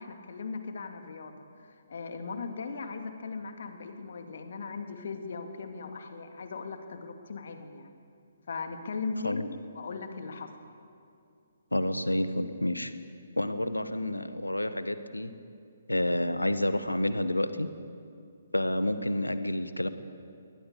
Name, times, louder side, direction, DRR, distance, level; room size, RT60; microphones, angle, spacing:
voice 1, 0.0-7.9 8.5-10.5, left 4 dB, 55° left, 6 dB, 2.3 m, -38 dB
voice 2, 11.7-12.9 13.4-15.3 15.9-17.7 18.5-19.9, left 1 dB, 85° left, 12 dB, 1.3 m, -29 dB
22.0 x 20.0 x 6.8 m, 2.4 s
figure-of-eight pair, 135°, 0 cm